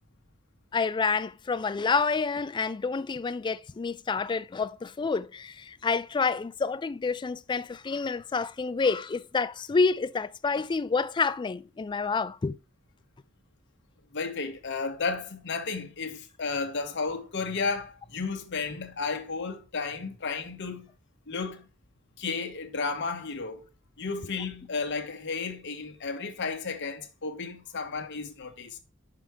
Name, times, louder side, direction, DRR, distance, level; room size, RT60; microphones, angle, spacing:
voice 1, 0.7-12.6, left 4 dB, 20° left, 0.3 m, -28 dB
voice 2, 14.1-20.9 21.3-21.7 22.2-23.7 24.0-28.8, left 4 dB, 60° left, 1.1 m, -33 dB
5.9 x 4.7 x 4.9 m
head